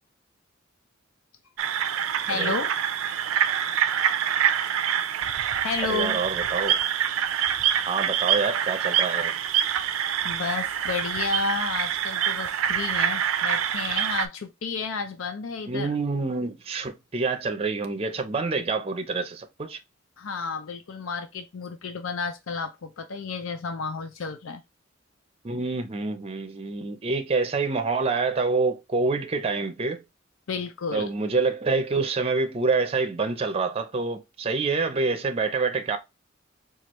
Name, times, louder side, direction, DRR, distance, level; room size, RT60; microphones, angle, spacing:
sound 1, 1.6-14.3, right 9 dB, 90° right, 0.4 m, -26 dB
voice 1, 2.2-2.7 5.6-6.2 10.2-15.9 20.2-24.6 30.5-31.1, left 4 dB, 90° left, 0.5 m, -31 dB
voice 2, 5.8-6.8 7.9-9.4 15.7-19.8 25.4-30.0 30.9-36.0, right 4 dB, 30° right, 0.5 m, -27 dB
4.4 x 2.4 x 3.0 m
head